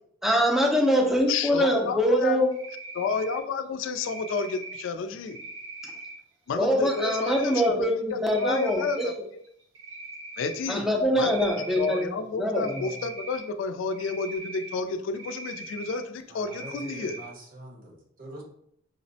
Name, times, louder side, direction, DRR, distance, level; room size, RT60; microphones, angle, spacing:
voice 1, 0.2-2.5 6.6-9.2 10.7-12.1 12.4-12.8, equal, ahead, 1 dB, 0.5 m, -24 dB
voice 2, 1.3-2.4 2.9-5.4 6.5-9.1 10.4-10.9 11.2-17.2, left 4 dB, 85° left, 9 dB, 0.3 m, -31 dB
Cricket, 2.5-3.4 4.0-4.8 5.3-6.1 6.8-7.7 8.1-9.1 9.4-10.6 11.2-12.0 12.5-13.4 13.9-14.7 15.1-16.0 16.4-17.2, right 3 dB, 75° right, 0.9 m, -41 dB
voice 3, 16.3-18.4, right 1 dB, 50° right, 0 dB, 0.8 m, -44 dB
4.9 x 2.0 x 2.7 m, 0.70 s
head